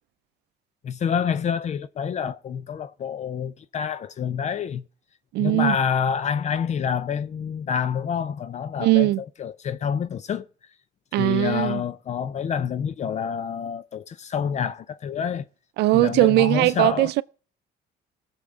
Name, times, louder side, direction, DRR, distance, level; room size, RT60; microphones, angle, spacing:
voice 1, 0.8-4.8 5.4-9.1 9.4-10.5 11.1-15.4 15.9-17.1, left 7 dB, 45° left, 0.6 m, -27 dB
voice 2, 5.3-5.8 8.8-9.2 11.1-11.8 15.8-17.2, right 19 dB, 80° right, 0.5 m, -20 dB
19.0 x 7.2 x 3.7 m
cardioid pair, 110°, 17 cm